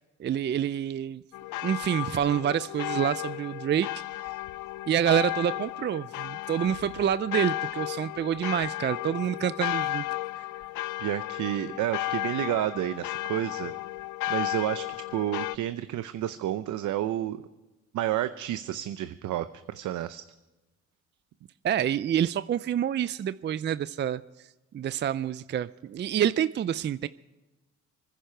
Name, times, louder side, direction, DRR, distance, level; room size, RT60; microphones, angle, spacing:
voice 1, 0.2-1.2 1.6-3.9 4.9-10.1 10.3-10.5 21.6-27.1, right 9 dB, 35° right, 16 dB, 0.4 m, -27 dB
sound 1, 1.3-15.6, left 17 dB, 80° left, 0.5 m, -34 dB
voice 2, 11.0-13.7 14.3-17.4 17.9-20.2, right 12 dB, 75° right, 11 dB, 0.7 m, -30 dB
25.0 x 10.0 x 4.5 m, 1.1 s
cardioid pair, 90°, 30 cm